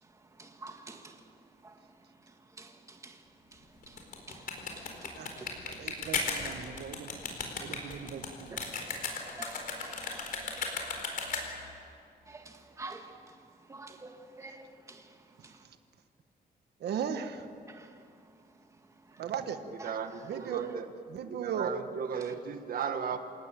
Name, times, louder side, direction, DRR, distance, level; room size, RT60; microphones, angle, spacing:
voice 1, 0.0-5.5 8.5-8.6 9.4-10.4 12.3-15.7 17.7-19.2 19.8-20.6 22.1-22.4, right 3 dB, 20° right, 1.8 m, -50 dB
sound 1, 3.8-11.7, left 4 dB, 60° left, 4.4 m, -36 dB
voice 2, 5.8-7.1 7.6-8.6 10.1-10.2 11.1-11.3 15.4-15.5 16.8-17.5 19.2-19.6 20.2-20.8 21.1-22.0, right 7 dB, 80° right, 1.4 m, -37 dB
voice 3, 19.8-20.9 21.3-23.2, right 7 dB, 60° right, 1.6 m, -36 dB
28.0 x 18.5 x 9.0 m
wide cardioid pair, 165°, 17 cm